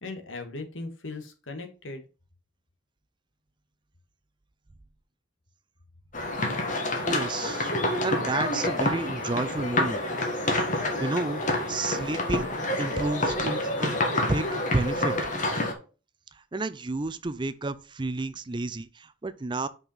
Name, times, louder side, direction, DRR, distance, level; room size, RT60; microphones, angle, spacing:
voice 1, 0.0-2.0, left 3 dB, 85° left, 1.7 m, -38 dB
sound 1, 6.1-15.7, left 1 dB, 40° left, 1.7 m, -28 dB
voice 2, 7.1-7.7 8.0-10.0 11.0-11.4 11.7-12.5 12.8-14.0 14.3-15.1 16.3-19.7, right 2 dB, 25° right, 0.5 m, -31 dB
5.8 x 5.5 x 5.6 m
head